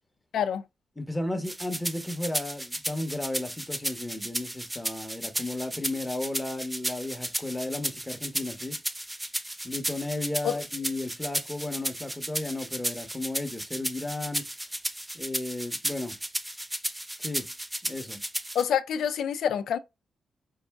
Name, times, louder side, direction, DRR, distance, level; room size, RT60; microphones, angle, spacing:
voice 1, 0.3-0.6 10.4-10.5 18.5-19.8, left 8 dB, 85° left, 0.5 m, -27 dB
voice 2, 1.0-8.8 9.6-14.5 15.1-16.2 17.2-17.5 17.8-18.2, left 2 dB, 10° left, 0.8 m, -34 dB
sound 1, 1.4-18.6, right 1 dB, 10° right, 0.4 m, -34 dB
5.5 x 2.6 x 3.4 m
wide cardioid pair, 170°, 0 cm